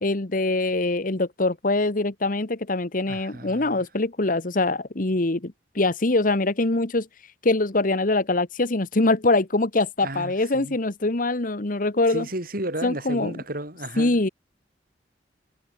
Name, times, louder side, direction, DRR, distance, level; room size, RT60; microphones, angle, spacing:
voice 1, 0.0-7.1 7.4-12.3 12.8-13.3 14.0-14.3, left 2 dB, 50° left, 1.4 m, -23 dB
voice 2, 3.1-3.8 10.0-10.8 12.1-14.2, right 1 dB, 55° right, 7.7 m, -33 dB
head